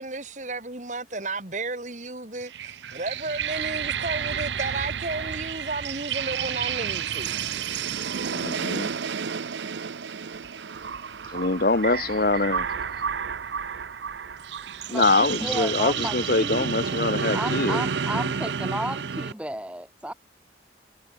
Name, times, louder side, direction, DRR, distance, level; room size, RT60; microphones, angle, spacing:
voice 1, 0.0-7.4, right 2 dB, 40° right, 2.5 m, -33 dB
sound 1, 2.4-19.3, right 7 dB, 85° right, 0.6 m, -30 dB
voice 2, 8.3-8.9 11.3-12.7 14.9-17.8, left 3 dB, 55° left, 1.0 m, -24 dB
voice 3, 14.9-16.7 17.3-20.1, right 1 dB, 5° right, 1.0 m, -33 dB
head